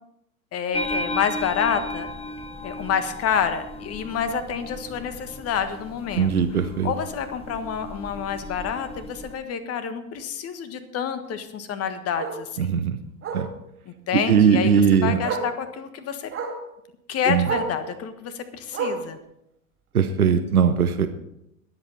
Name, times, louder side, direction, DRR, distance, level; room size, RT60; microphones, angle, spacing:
voice 1, 0.5-2.1 2.6-12.7 13.8-14.7 15.0-16.3 17.1-19.2, left 7 dB, 35° left, 10 dB, 1.5 m, -28 dB
sound 1, 0.7-9.4, left 1 dB, 15° left, 1.2 m, -35 dB
Bark, 5.7-5.9 6.3-6.4 6.8-6.9 7.1-7.2 8.6-8.7 11.2-11.3 12.2-12.4 13.2-13.5 14.7-14.8 15.2-15.6 16.3-16.6 17.4-17.8 18.7-19.1 20.1-20.2, right 5 dB, 30° right, 2.6 m, -30 dB
voice 2, 6.1-6.9 12.6-13.0 13.3-13.5 14.3-15.2 17.3-17.5 19.9-21.1, right 7 dB, 80° right, 8 dB, 0.9 m, -20 dB
22.5 x 8.1 x 4.1 m, 0.81 s
figure-of-eight pair, 85°, 43 cm